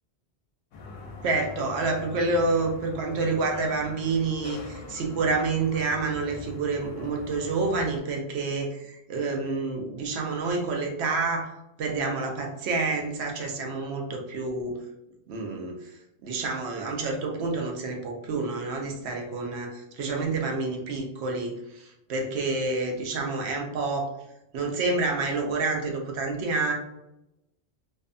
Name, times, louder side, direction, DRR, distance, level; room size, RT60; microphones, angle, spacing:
sound 1, 0.7-8.0, left 3 dB, 70° left, 0.8 m, -43 dB
voice 1, 1.2-11.5 11.8-14.8 15.3-15.9 16.2-24.1 24.5-26.7, right 3 dB, 80° right, 2 dB, 0.8 m, -28 dB
2.6 x 2.1 x 2.5 m, 0.86 s
omnidirectional pair, 1.1 m